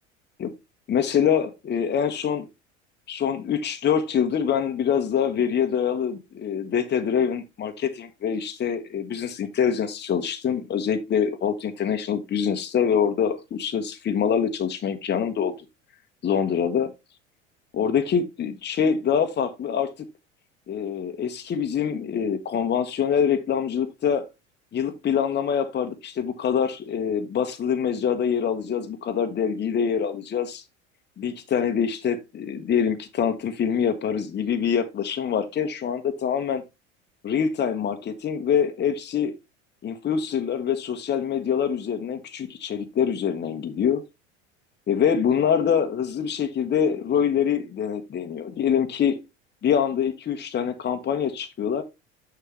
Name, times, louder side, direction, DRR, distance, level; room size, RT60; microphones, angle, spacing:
voice 1, 0.9-2.5 3.1-15.5 16.2-16.9 17.7-19.9 20.7-24.3 24.7-30.6 31.2-36.6 37.2-39.3 39.8-44.0 44.9-49.2 49.6-51.8, left 7 dB, 30° left, 1.1 m, -25 dB
6.5 x 5.9 x 3.2 m
hypercardioid pair, 80°, 36 cm